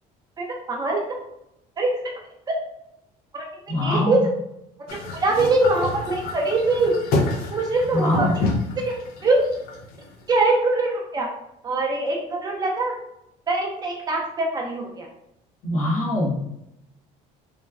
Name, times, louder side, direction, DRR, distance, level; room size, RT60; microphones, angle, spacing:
voice 1, 0.4-1.0 1.8-1.9 2.5-2.6 3.3-3.4 3.8-4.2 5.1-6.9 7.5-8.3 9.2-9.4 10.3-11.3 11.6-12.9 13.5-15.1, right 2 dB, 25° right, -1 dB, 0.5 m, -22 dB
voice 2, 3.7-4.2 7.9-8.3 15.6-16.4, left 1 dB, 55° left, -3 dB, 1.1 m, -23 dB
sound 1, 4.9-10.2, left 2 dB, 75° left, 0.5 m, -28 dB
3.1 x 2.1 x 2.4 m, 0.82 s
cardioid pair, 135°, 15 cm